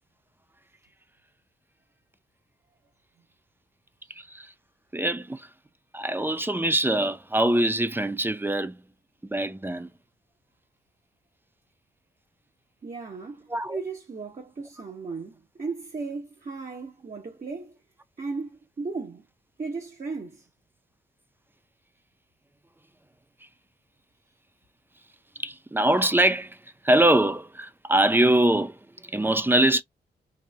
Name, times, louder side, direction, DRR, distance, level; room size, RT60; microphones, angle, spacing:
voice 1, 4.1-4.5 4.9-5.5 5.9-8.8 9.3-9.9 13.5-13.8 25.4-26.6 26.8-29.8, right 1 dB, 10° right, 0.5 m, -23 dB
voice 2, 12.8-17.7 18.2-19.2 19.6-20.4, right 4 dB, 45° right, 1.2 m, -36 dB
4.1 x 2.5 x 2.4 m
supercardioid pair, 50°, 18 cm